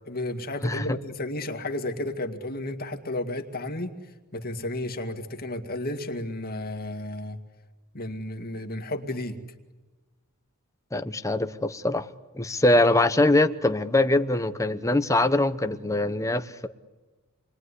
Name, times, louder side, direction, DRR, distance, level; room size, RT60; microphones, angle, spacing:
voice 1, 0.1-4.0 4.3-7.4 7.9-9.4, left 1 dB, 45° left, 2.1 m, -32 dB
voice 2, 10.9-12.1 12.3-16.7, left 2 dB, 15° left, 1.0 m, -23 dB
28.0 x 21.5 x 9.9 m
head